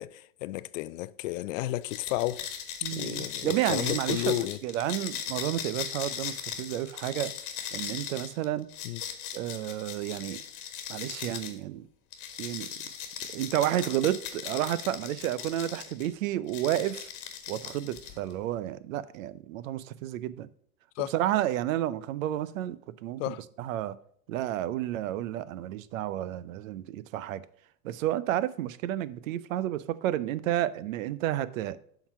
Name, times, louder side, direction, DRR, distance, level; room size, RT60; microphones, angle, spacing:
voice 1, 0.0-2.5 3.0-4.6 8.8-9.0 21.0-21.1 23.2-23.4, left 16 dB, 70° left, 0.5 m, -32 dB
sound 1, 1.8-11.6 12.1-16.1 16.5-18.3, left 9 dB, 45° left, 1.3 m, -38 dB
voice 2, 2.8-7.3 7.7-8.7 9.3-10.4 10.9-11.9 12.4-12.7 13.3-17.1 17.5-20.5 21.0-24.0 24.3-27.4 27.8-31.8, right 13 dB, 75° right, 0.6 m, -31 dB
7.1 x 3.9 x 5.6 m
hypercardioid pair, 115°, 40 cm